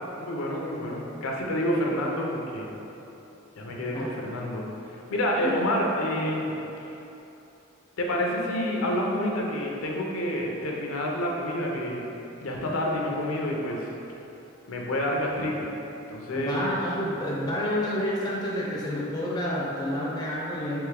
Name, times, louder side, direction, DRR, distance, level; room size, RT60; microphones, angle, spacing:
voice 1, 0.2-2.7 3.6-4.7 5.1-6.6 8.0-12.1 12.4-13.9 14.7-15.7 16.1-16.6, equal, 85° left, -1 dB, 0.5 m, -28 dB
voice 2, 16.3-20.8, left 1 dB, 20° left, -5 dB, 0.4 m, -29 dB
3.5 x 3.2 x 3.3 m, 3.0 s
head